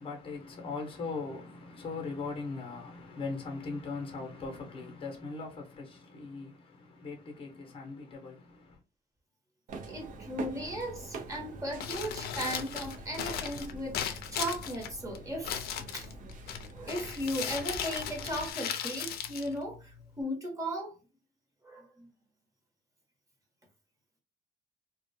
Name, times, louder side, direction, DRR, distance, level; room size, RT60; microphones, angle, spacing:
voice 1, 0.0-8.8, left 4 dB, 30° left, 0.7 m, -40 dB
sound 1, 9.7-18.5, right 3 dB, 50° right, 0.6 m, -45 dB
voice 2, 9.8-15.7 15.9-16.1 16.4-21.0 21.6-22.1, equal, 20° right, 1.0 m, -37 dB
Crumpling crinkling, 11.7-20.2, left 9 dB, 65° left, 0.4 m, -38 dB
2.3 x 2.1 x 2.6 m
cardioid pair, 110°, 17 cm